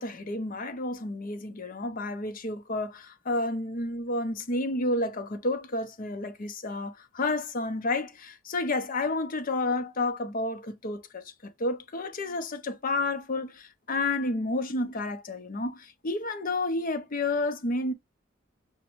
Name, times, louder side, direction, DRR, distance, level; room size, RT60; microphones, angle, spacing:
voice 1, 0.0-17.9, left 2 dB, 45° left, 0.7 m, -30 dB
6.1 x 2.2 x 3.0 m
head